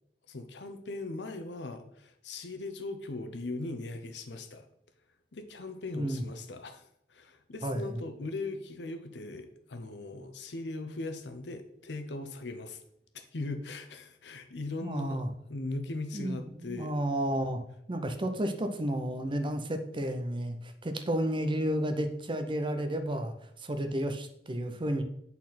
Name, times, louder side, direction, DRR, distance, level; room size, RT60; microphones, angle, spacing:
voice 1, 0.3-4.7 5.3-6.8 7.1-12.8 13.1-15.2 15.5-16.9, left 2 dB, 70° left, 7 dB, 0.8 m, -39 dB
voice 2, 5.9-6.3 7.6-8.0 14.8-15.3 16.1-17.6 17.9-25.0, right 1 dB, 30° right, 7 dB, 0.6 m, -32 dB
8.2 x 4.2 x 4.2 m, 0.72 s
head